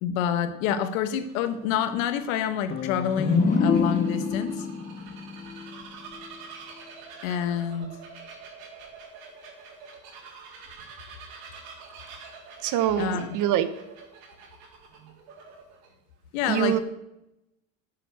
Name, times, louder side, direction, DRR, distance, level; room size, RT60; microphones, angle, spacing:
voice 1, 0.0-4.6 7.2-7.9 13.0-13.4 16.3-16.8, left 8 dB, 85° left, 10 dB, 1.5 m, -27 dB
Bird vocalization bird call bird song, 0.8-15.9, right 5 dB, 65° right, 3.9 m, -46 dB
sound 1, 2.7-6.4, left 5 dB, 25° left, 0.7 m, -27 dB
voice 2, 12.6-13.7 16.5-16.8, right 12 dB, 50° right, 13 dB, 1.0 m, -24 dB
11.5 x 7.6 x 6.7 m, 0.89 s
cardioid pair, 140°, 39 cm